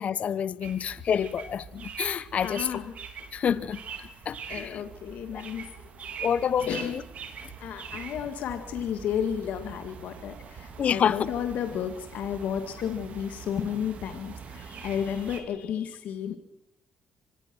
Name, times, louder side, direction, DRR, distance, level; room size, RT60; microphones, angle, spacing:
voice 1, 0.0-2.8 3.3-4.8 5.3-5.4 6.2-7.0 10.8-11.3, left 8 dB, 55° left, 0.9 m, -28 dB
sound 1, 0.6-15.4, right 6 dB, 60° right, 3.7 m, -43 dB
voice 2, 2.4-2.9 4.5-6.1 6.7-6.9 7.6-16.4, left 8 dB, 70° left, 2.0 m, -32 dB
25.0 x 18.5 x 6.3 m
supercardioid pair, 70°, 3 cm